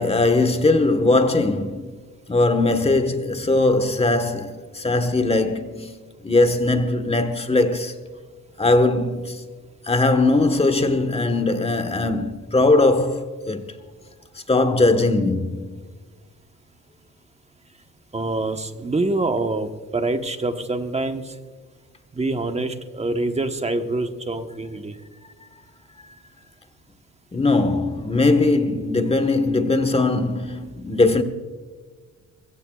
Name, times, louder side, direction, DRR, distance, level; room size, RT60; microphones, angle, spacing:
voice 1, 0.0-1.9 2.3-5.9 6.2-8.0 8.6-9.4 9.9-13.6 14.5-15.8 27.3-31.2, left 2 dB, 20° left, 1.4 m, -20 dB
voice 2, 18.1-21.3 22.1-25.0, right 2 dB, 20° right, 1.3 m, -25 dB
22.5 x 16.0 x 2.5 m
cardioid pair, 90°, 30 cm